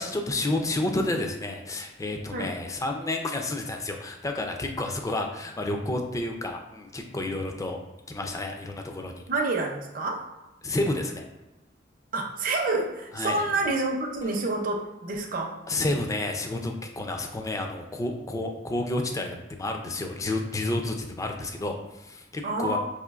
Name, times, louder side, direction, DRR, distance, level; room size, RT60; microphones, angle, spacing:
voice 1, 0.0-7.8 8.1-9.2 10.6-11.2 13.1-13.4 15.7-22.8, left 2 dB, 15° left, 3 dB, 0.4 m, -30 dB
voice 2, 9.3-10.2 12.1-15.6 22.4-22.8, right 2 dB, 45° right, 2 dB, 0.5 m, -28 dB
4.9 x 2.5 x 2.4 m, 1.0 s
head